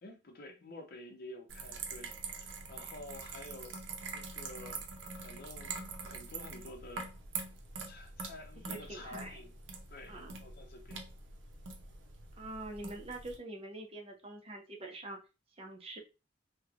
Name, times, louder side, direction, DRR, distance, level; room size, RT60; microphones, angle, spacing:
voice 1, 0.0-3.8 4.1-4.9 5.2-7.1 7.8-9.5 9.9-11.0, left 2 dB, 55° left, 0.6 m, -50 dB
sound 1, 1.5-13.4, right 4 dB, 75° right, 0.6 m, -44 dB
voice 2, 8.7-9.4 10.1-10.4 12.4-15.2 15.6-16.0, right 2 dB, 30° right, 0.6 m, -45 dB
3.0 x 2.1 x 2.4 m
head